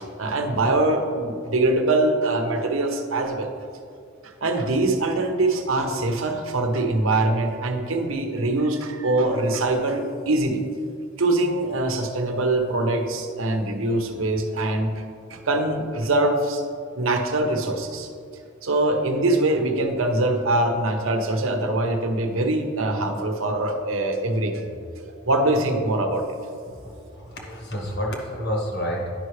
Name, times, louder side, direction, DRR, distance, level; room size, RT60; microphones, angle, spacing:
voice 1, 0.0-3.5 4.2-10.6 11.2-15.0 15.3-16.6 17.0-18.1 18.6-24.7 25.2-26.3, right 2 dB, 85° right, 5 dB, 0.8 m, -23 dB
voice 2, 26.7-29.1, equal, 60° left, 0 dB, 1.4 m, -30 dB
10.0 x 5.6 x 3.2 m, 2.3 s
head